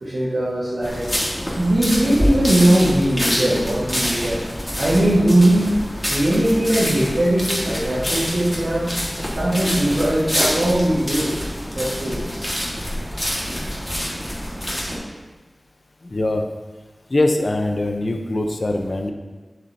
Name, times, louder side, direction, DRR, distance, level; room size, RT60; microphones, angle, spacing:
voice 1, 0.0-4.4 4.8-5.7 6.1-8.9 9.2-11.3 11.8-12.4, right 1 dB, 75° right, -9 dB, 1.6 m, -20 dB
sound 1, 0.8-15.0, equal, 15° left, 1.8 m, -26 dB
voice 2, 16.0-16.4 17.1-19.1, left 2 dB, 50° left, 4 dB, 0.7 m, -22 dB
7.7 x 7.3 x 2.8 m, 1.3 s
wide cardioid pair, 55°, 0 cm